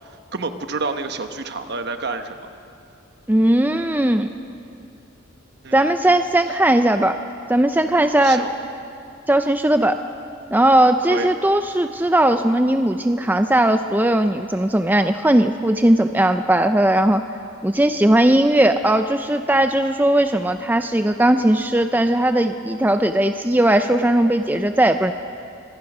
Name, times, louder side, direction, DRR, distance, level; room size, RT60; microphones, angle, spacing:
voice 1, 0.3-2.4 5.6-5.9 8.2-8.5 11.1-11.3, right 3 dB, 55° right, 7 dB, 1.2 m, -28 dB
voice 2, 3.3-4.3 5.7-7.2 7.5-8.4 9.3-10.0 10.5-17.2 17.6-25.1, right 1 dB, 10° right, 8 dB, 0.5 m, -18 dB
25.0 x 18.5 x 6.1 m, 2.5 s
head